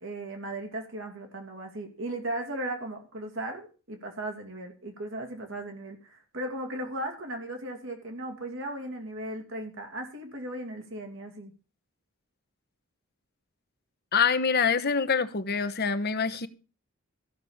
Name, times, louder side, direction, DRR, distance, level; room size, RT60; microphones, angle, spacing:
voice 1, 0.0-11.5, right 1 dB, 65° right, 2.6 m, -37 dB
voice 2, 14.1-16.5, left 5 dB, 50° left, 1.0 m, -25 dB
14.5 x 6.6 x 7.1 m
head